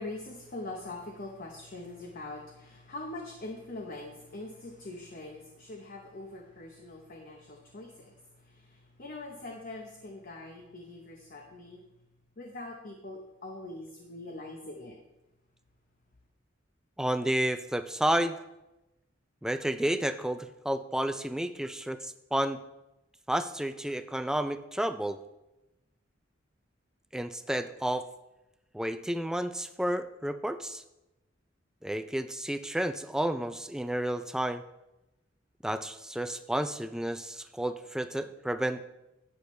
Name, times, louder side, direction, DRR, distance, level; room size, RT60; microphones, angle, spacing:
voice 1, 0.0-11.8 12.4-15.0, left 2 dB, 45° left, 2 dB, 0.9 m, -43 dB
voice 2, 17.0-18.4 19.4-22.6 23.3-25.2 27.1-28.1 28.7-30.8 31.8-34.6 35.6-38.8, right 1 dB, 5° right, 10 dB, 0.4 m, -31 dB
11.5 x 8.4 x 3.2 m, 0.95 s
head